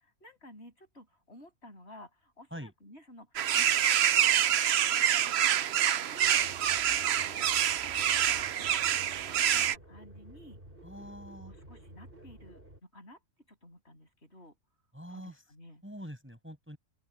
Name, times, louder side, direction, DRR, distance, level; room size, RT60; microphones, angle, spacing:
voice 1, 0.0-6.5 6.9-10.6 11.4-13.2 13.5-14.6 15.1-15.8, left 1 dB, 50° left, 7.6 m, -53 dB
sound 1, 3.4-9.8, right 10 dB, 60° right, 0.8 m, -26 dB
sound 2, 6.2-12.8, right 1 dB, 40° right, 7.1 m, -51 dB
voice 2, 10.8-11.5 14.9-15.4 15.8-16.8, equal, 10° right, 6.2 m, -44 dB
open air
omnidirectional pair, 1.4 m